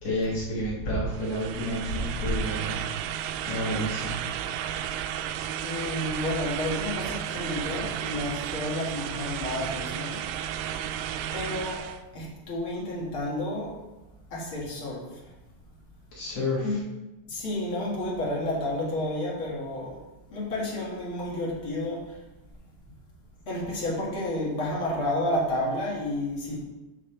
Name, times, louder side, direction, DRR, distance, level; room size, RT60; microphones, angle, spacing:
voice 1, 0.0-2.8 3.5-4.2 16.1-16.8, left 1 dB, 75° left, -6 dB, 1.4 m, -30 dB
sound 1, 1.1-12.0, right 10 dB, 85° right, 3.2 m, -33 dB
voice 2, 5.6-10.2 11.3-11.9 12.1-13.7 14.3-15.2 16.6-16.8 17.3-20.0 20.3-22.2 23.5-26.6, left 1 dB, 40° left, -5 dB, 1.9 m, -31 dB
13.0 x 6.1 x 3.5 m, 1.0 s
omnidirectional pair, 5.8 m